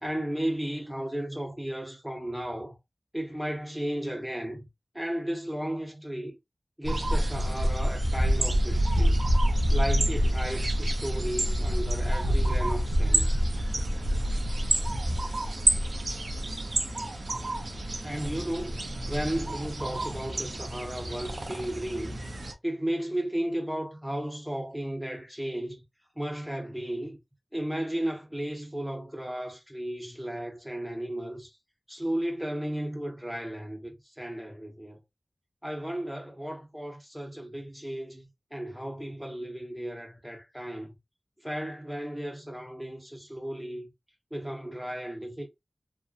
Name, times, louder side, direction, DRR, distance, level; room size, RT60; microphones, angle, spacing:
voice 1, 0.0-2.8 3.1-4.7 4.9-6.4 6.8-9.2 9.7-13.3 18.0-22.2 22.6-25.8 26.2-27.2 27.5-31.6 31.9-35.0 35.6-40.9 41.4-43.9 44.3-45.5, right 1 dB, 5° right, 0.9 m, -34 dB
sound 1, 6.8-22.5, right 1 dB, 75° right, 0.5 m, -27 dB
2.7 x 2.1 x 2.4 m
wide cardioid pair, 60°, 0 cm